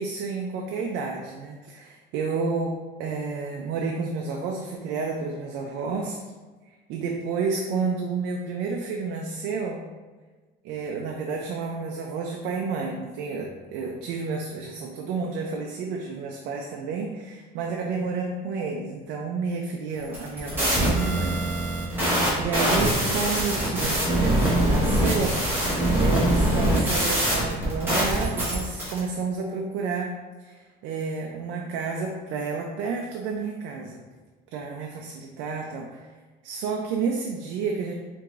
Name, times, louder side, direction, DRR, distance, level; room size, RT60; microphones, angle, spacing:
voice 1, 0.0-6.2 6.7-9.9 10.6-21.7 22.1-30.1 30.4-34.0 34.5-36.1 36.4-37.9, right 4 dB, 75° right, 1 dB, 0.5 m, -30 dB
sound 1, 20.0-29.0, right 1 dB, 10° right, 1.4 m, -23 dB
4.7 x 3.5 x 2.5 m, 1.3 s
cardioid pair, 170°, 18 cm